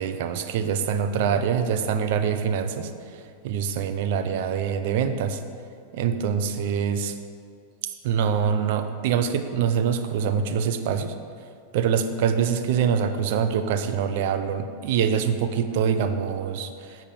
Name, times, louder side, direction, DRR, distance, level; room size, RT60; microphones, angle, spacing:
voice 1, 0.0-2.9 3.4-5.4 5.9-7.1 8.0-11.1 11.7-17.0, right 7 dB, 65° right, 9 dB, 0.9 m, -24 dB
8.1 x 7.2 x 6.9 m, 2.2 s
hypercardioid pair, 125°, 0 cm